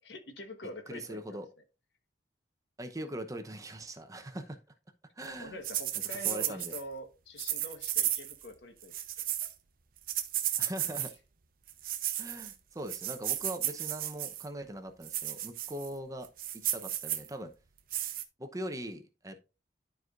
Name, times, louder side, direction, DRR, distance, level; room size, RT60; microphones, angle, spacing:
voice 1, 0.0-1.4 5.4-8.9 9.4-9.5, left 1 dB, 80° left, 1.2 m, -45 dB
voice 2, 0.9-1.5 2.8-4.6 5.2-5.6 6.2-6.7 10.6-11.1 12.2-16.3 16.5-17.5 18.4-19.4, right 1 dB, 20° right, 0.8 m, -41 dB
sound 1, 5.6-6.8 7.4-8.5 8.8-9.5 10.1-11.1 11.7-12.5 12.9-14.5 15.0-15.9 16.2-17.3 17.9-18.2, right 12 dB, 55° right, 0.8 m, -34 dB
12.0 x 4.6 x 2.5 m
head